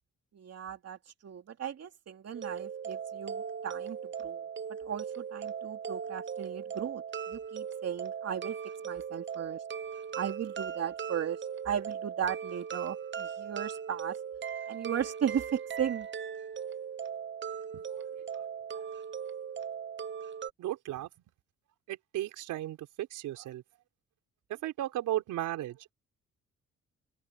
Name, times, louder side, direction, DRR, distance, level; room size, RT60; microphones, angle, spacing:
voice 1, 0.3-4.4 4.8-8.6 8.8-9.6 10.1-14.2 14.7-16.1, right 8 dB, 55° right, 3.0 m, -36 dB
sound 1, 2.3-20.5, right 7 dB, 40° right, 0.9 m, -39 dB
voice 2, 20.6-21.1 21.9-23.6 24.5-25.9, right 14 dB, 90° right, 4.3 m, -35 dB
open air
cardioid pair, 90°, 30 cm